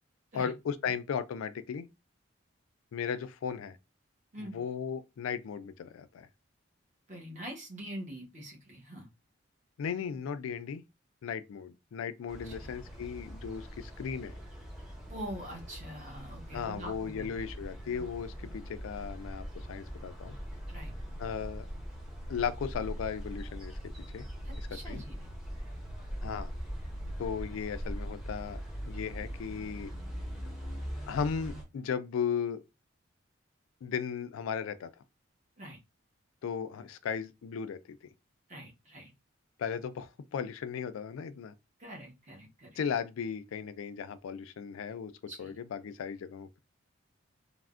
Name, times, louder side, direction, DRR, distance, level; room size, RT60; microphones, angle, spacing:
voice 1, 0.3-1.9 2.9-3.8 4.4-6.3 9.8-10.8 11.2-14.3 16.5-20.4 21.2-21.7 22.3-24.2 24.5-25.0 26.2-26.5 27.2-29.9 31.1-32.6 33.8-34.9 36.4-38.0 39.6-41.5 42.8-45.1 45.4-46.6, left 7 dB, 90° left, 0.3 m, -36 dB
voice 2, 7.1-9.1 12.4-12.6 15.1-17.3 17.9-18.0 18.4-18.5 20.7-20.9 24.4-25.3 35.6-35.8 38.5-39.1 41.8-42.8 45.3-45.5, equal, 35° right, 0.8 m, -44 dB
sound 1, 12.3-31.6, equal, 5° right, 0.6 m, -41 dB
3.3 x 2.0 x 2.4 m
head